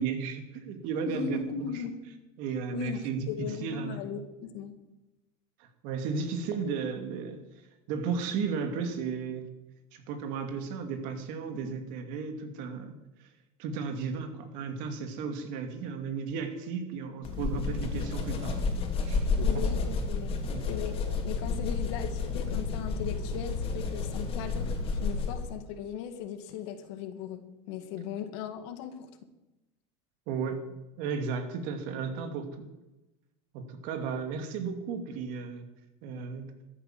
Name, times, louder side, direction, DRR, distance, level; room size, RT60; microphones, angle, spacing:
voice 1, 0.0-1.8 2.4-4.1 5.6-7.4 7.9-9.4 9.9-12.9 13.6-18.6 19.0-19.3 19.5-19.6 20.4-20.7 30.3-30.6 31.0-32.7 33.5-35.6 36.0-36.5, right 5 dB, 65° right, 6 dB, 2.6 m, -34 dB
voice 2, 1.1-2.0 2.7-3.0 3.3-4.8 11.6-11.8 19.4-20.4 20.7-21.0 21.2-29.1, left 8 dB, 70° left, 8 dB, 1.9 m, -38 dB
sound 1, 17.2-25.5, left 4 dB, 40° left, 3.0 m, -31 dB
13.5 x 9.3 x 7.5 m, 1.0 s
supercardioid pair, 120°, 15 cm